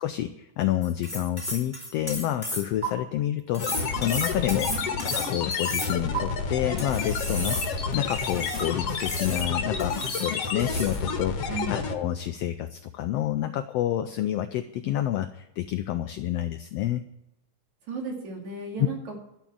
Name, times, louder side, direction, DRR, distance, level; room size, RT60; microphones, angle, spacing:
voice 1, 0.0-4.7 5.1-17.1, left 12 dB, 85° left, 10 dB, 1.4 m, -29 dB
sound 1, 0.8-2.9 3.5-6.2 6.8-8.7 9.0-9.5 9.8-10.3 10.6-11.0, right 1 dB, 10° left, 3.9 m, -34 dB
sound 2, 3.6-11.9, left 5 dB, 60° left, 2.1 m, -29 dB
voice 2, 17.9-19.2, right 4 dB, 65° right, 1 dB, 3.8 m, -34 dB
12.0 x 6.8 x 8.6 m, 0.90 s
omnidirectional pair, 3.5 m